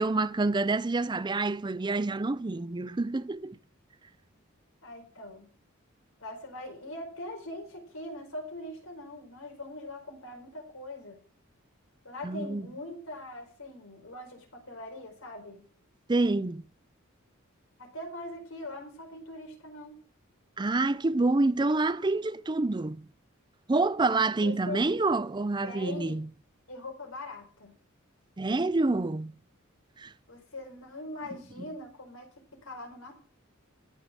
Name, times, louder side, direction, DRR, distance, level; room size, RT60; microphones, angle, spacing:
voice 1, 0.0-3.6 12.2-12.6 16.1-16.6 20.6-23.0 23.7-26.3 28.4-29.3 30.0-30.1, right 3 dB, 20° right, 0.5 m, -27 dB
voice 2, 4.8-5.5 6.2-11.2 12.0-15.7 17.8-19.9 24.4-24.8 25.6-26.2 26.7-27.7 30.3-32.3 32.6-33.2, left 1 dB, 90° left, 4.5 m, -42 dB
14.5 x 5.5 x 7.5 m
head